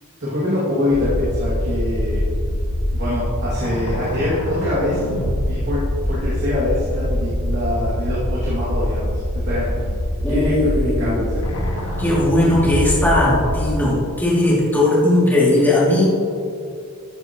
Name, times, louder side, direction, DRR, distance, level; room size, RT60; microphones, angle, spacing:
voice 1, 0.2-2.2 2.9-5.1 5.4-5.8 6.1-10.0 10.3-11.5 11.8-12.0, left 1 dB, 55° right, -9 dB, 2.5 m, -24 dB
sound 1, 0.9-13.8, equal, 85° left, 1.8 m, -24 dB
voice 2, 10.2-11.3 12.0-16.1, left 1 dB, 10° left, -7 dB, 2.8 m, -18 dB
13.5 x 10.0 x 3.1 m, 2.5 s
head